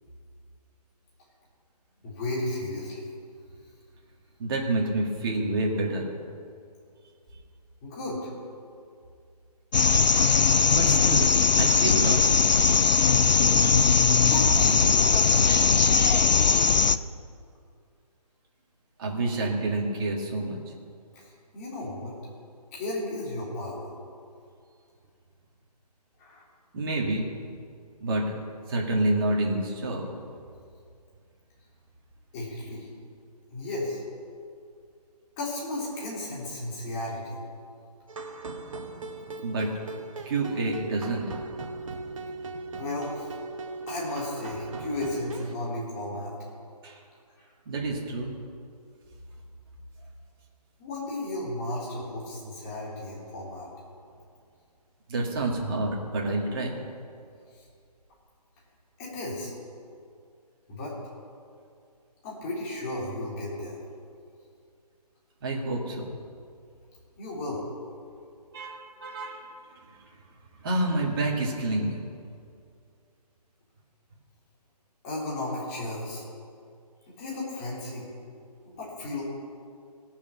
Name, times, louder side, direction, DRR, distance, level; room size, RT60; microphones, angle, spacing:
voice 1, 2.0-3.1 7.8-8.3 14.2-15.8 21.1-22.1 22.7-23.9 26.2-26.4 32.3-32.9 33.5-34.0 35.4-37.4 42.8-43.4 43.9-46.3 50.8-53.7 59.0-59.5 60.7-60.9 62.2-63.8 67.2-67.6 75.0-76.2 77.1-78.1 78.6-79.2, left 1 dB, 25° left, -6 dB, 3.8 m, -34 dB
voice 2, 4.4-6.1 10.7-12.3 19.0-20.6 26.7-27.4 28.0-28.4 28.7-30.0 39.4-39.7 40.3-41.3 46.8-47.0 47.7-48.3 55.1-56.7 65.4-66.1 68.5-69.5 70.6-72.0, right 2 dB, 35° right, -2 dB, 2.2 m, -28 dB
sound 1, 9.7-17.0, left 5 dB, 90° left, 0.6 m, -20 dB
sound 2, 38.1-45.6, right 3 dB, 50° right, 1.3 m, -38 dB
18.0 x 7.2 x 6.0 m, 2.3 s
figure-of-eight pair, 150°, 21 cm